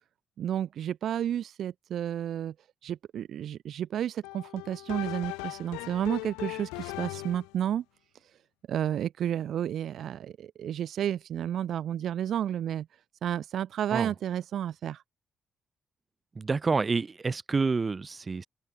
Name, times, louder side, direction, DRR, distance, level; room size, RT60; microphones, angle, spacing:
voice 1, 0.4-2.5 2.8-7.8 8.2-8.4 8.7-15.0, right 10 dB, 70° right, 1.3 m, -31 dB
sound 1, 4.2-7.6, left 27 dB, 90° left, 2.0 m, -39 dB
voice 2, 16.4-18.5, right 4 dB, 40° right, 0.9 m, -28 dB
hypercardioid pair, 45°, 0 cm